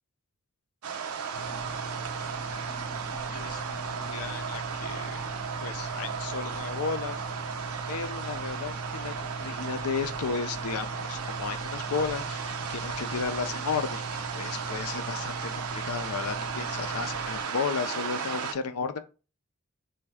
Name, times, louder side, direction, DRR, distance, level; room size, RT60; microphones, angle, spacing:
sound 1, 0.8-18.5, right 6 dB, 90° right, 0.6 m, -35 dB
sound 2, 1.3-17.4, right 1 dB, 65° left, 1.1 m, -40 dB
voice 1, 2.1-2.6 3.3-5.2 5.6-7.2 7.9-19.1, left 5 dB, 90° left, 0.5 m, -34 dB
3.4 x 2.6 x 3.4 m
head